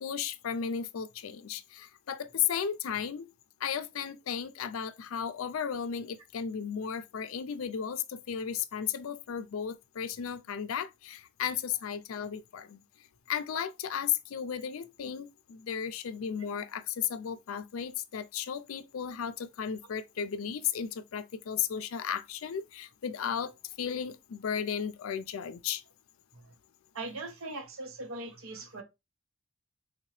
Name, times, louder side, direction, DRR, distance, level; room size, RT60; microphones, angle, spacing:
voice 1, 0.0-3.3 3.6-12.8 13.3-25.8, left 8 dB, 80° left, 0.4 m, -34 dB
voice 2, 26.9-28.8, right 2 dB, 75° right, 0.8 m, -40 dB
3.5 x 2.8 x 3.1 m
head